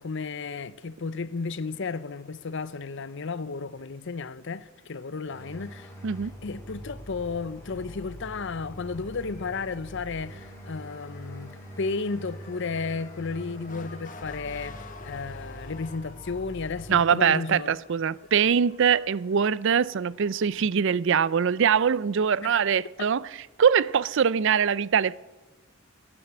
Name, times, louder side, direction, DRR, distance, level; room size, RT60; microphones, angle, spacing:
voice 1, 0.0-5.9 6.4-17.8 22.4-22.6, left 4 dB, 65° left, 0.7 m, -33 dB
sound 1, 5.3-17.0, equal, 15° left, 4.4 m, -43 dB
Motor vehicle (road) / Siren, 7.2-20.7, left 4 dB, 40° left, 1.4 m, -51 dB
voice 2, 16.9-23.2 23.6-25.1, right 7 dB, 65° right, 0.5 m, -23 dB
17.0 x 9.9 x 8.7 m
head